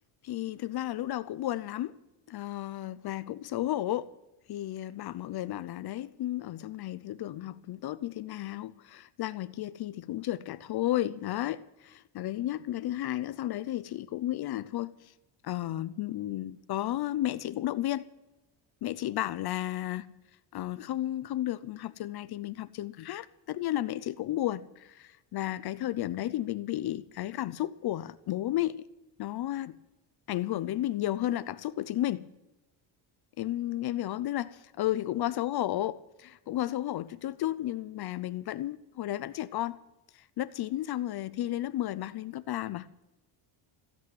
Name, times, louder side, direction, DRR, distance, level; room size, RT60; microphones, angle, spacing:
voice 1, 0.2-1.9 2.3-4.1 4.5-15.1 15.4-18.0 18.8-20.1 20.5-28.8 29.2-29.8 30.3-32.2 33.4-39.8 40.1-42.9, left 14 dB, 50° left, 0.6 m, -33 dB
16.0 x 8.5 x 9.3 m
cardioid pair, 160°, 49 cm